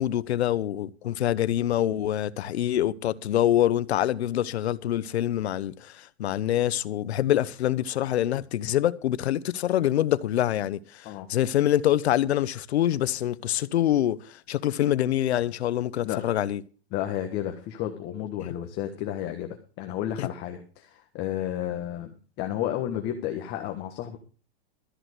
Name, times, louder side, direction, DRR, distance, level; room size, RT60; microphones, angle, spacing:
voice 1, 0.0-16.6 20.2-20.3, left 12 dB, 80° left, 0.9 m, -25 dB
voice 2, 16.9-22.1 22.4-24.2, left 11 dB, 30° left, 1.5 m, -32 dB
13.5 x 5.9 x 8.1 m
hypercardioid pair, 150°, 32 cm